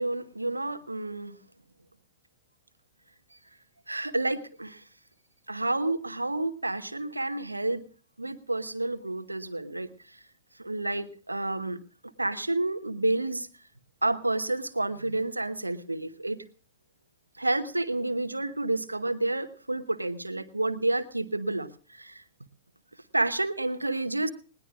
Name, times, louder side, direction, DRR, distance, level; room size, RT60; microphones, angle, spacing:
voice 1, 0.0-1.4 3.9-4.8 5.5-7.8 8.2-9.9 10.6-11.8 12.2-13.5 14.0-16.4 17.4-22.2 23.1-24.3, right 2 dB, 85° right, 14 dB, 0.9 m, -30 dB
20.0 x 19.0 x 2.4 m, 0.40 s
figure-of-eight pair, 100°, 0 cm